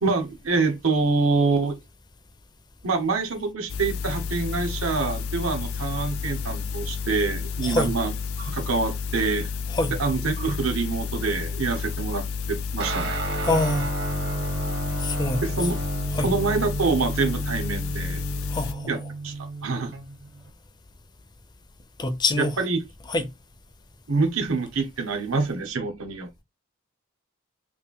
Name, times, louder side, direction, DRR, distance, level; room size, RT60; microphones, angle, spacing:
voice 1, 0.0-1.8 2.8-8.1 8.4-9.5 9.9-13.2 15.4-15.8 16.2-18.2 18.9-19.0 19.2-19.3 19.6-19.9 22.4-22.8 24.1-26.4, right 4 dB, 85° right, 0.9 m, -26 dB
sound 1, 3.7-18.7, left 5 dB, 90° left, 0.5 m, -31 dB
voice 2, 7.6-7.9 9.7-9.9 13.4-13.9 15.0-15.4 16.1-16.3 18.5-18.9 22.0-22.5 23.1-23.3, left 2 dB, 20° left, 0.4 m, -25 dB
Guitar, 12.8-20.5, right 3 dB, 50° right, 0.8 m, -32 dB
3.4 x 2.5 x 3.5 m
head